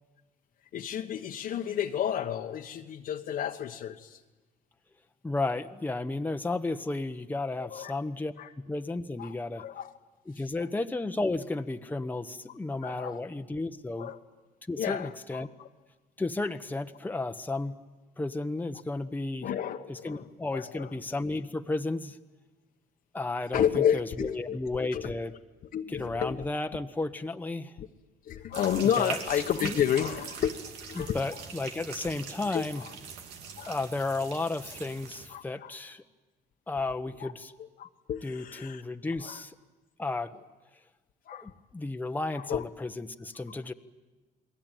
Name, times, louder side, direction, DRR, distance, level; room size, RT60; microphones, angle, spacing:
voice 1, 0.7-4.2 7.6-7.9 8.4-8.5 9.2-9.9 10.3-10.5 12.5-12.6 12.8-13.3 14.0-14.2 14.8-15.7 19.4-20.9 23.5-25.2 25.7-26.5 27.8-27.9 28.2-30.5 30.9-31.4 32.5-32.9 33.6-33.8 35.3-35.8 37.2-37.3 37.8-38.8 39.2-39.4 41.3-41.5 42.3-42.6, left 9 dB, 60° left, 3 dB, 1.3 m, -31 dB
voice 2, 5.2-9.6 10.3-14.1 14.7-15.5 16.2-17.8 18.2-19.5 19.9-22.2 23.1-25.3 25.9-27.8 29.0-29.2 29.6-29.8 31.0-32.8 33.7-36.0 36.7-37.5 38.2-39.5 40.0-40.3 41.3-43.7, left 2 dB, 10° left, 6 dB, 1.2 m, -33 dB
sound 1, 28.5-35.3, right 6 dB, 90° right, 3.0 m, -42 dB
29.5 x 21.0 x 9.2 m, 1.2 s
cardioid pair, 110°, 17 cm